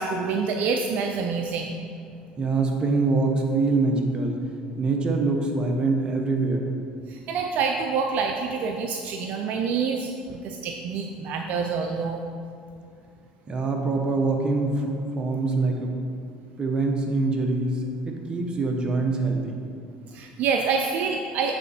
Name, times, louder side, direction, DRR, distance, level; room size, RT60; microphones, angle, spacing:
voice 1, 0.0-1.7 7.1-12.2 20.1-21.5, right 5 dB, 60° right, 3 dB, 0.5 m, -27 dB
voice 2, 2.4-4.4 4.8-6.6 13.5-16.0 16.6-19.6, right 3 dB, 30° right, 2 dB, 1.0 m, -24 dB
7.9 x 4.1 x 4.2 m, 2.4 s
supercardioid pair, 90°, 3 cm